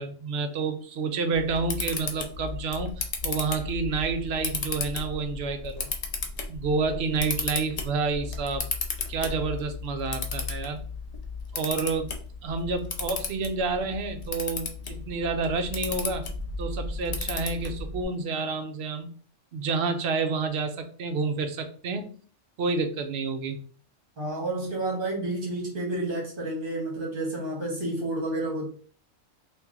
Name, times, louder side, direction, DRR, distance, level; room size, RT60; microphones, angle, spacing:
voice 1, 0.0-5.9 6.5-8.7 9.1-10.8 11.5-12.1 12.4-16.3 16.6-19.1 19.5-22.2 22.6-23.6, right 4 dB, 60° right, 7 dB, 0.8 m, -29 dB
Camera, 1.3-18.0, left 4 dB, 55° left, 0.4 m, -34 dB
voice 2, 24.2-28.7, right 2 dB, 45° right, -4 dB, 1.5 m, -30 dB
2.9 x 2.6 x 3.6 m, 0.43 s
omnidirectional pair, 1.3 m